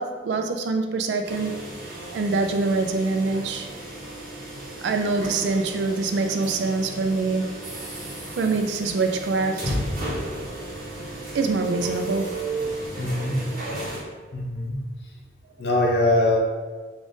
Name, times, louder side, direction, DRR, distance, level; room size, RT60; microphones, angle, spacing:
voice 1, 0.0-1.5 2.1-3.7 4.8-7.5 8.4-9.8 11.3-12.3, right 3 dB, 80° right, 5 dB, 0.3 m, -24 dB
sound 1, 1.2-14.0, right 1 dB, 50° right, 0.9 m, -34 dB
voice 2, 13.0-13.4 14.3-14.8 15.6-16.4, left 1 dB, 70° left, -1 dB, 0.7 m, -22 dB
3.8 x 2.4 x 3.5 m, 1.3 s
head